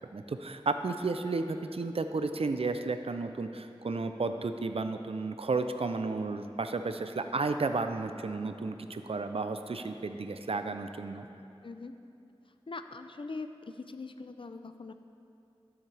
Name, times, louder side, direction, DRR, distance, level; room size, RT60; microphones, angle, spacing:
voice 1, 0.1-11.3, right 3 dB, 80° right, 8 dB, 0.4 m, -33 dB
voice 2, 11.6-11.9 12.5-14.9, left 3 dB, 60° left, 9 dB, 0.4 m, -42 dB
12.0 x 7.2 x 3.4 m, 2.7 s
wide cardioid pair, 50°, 10 cm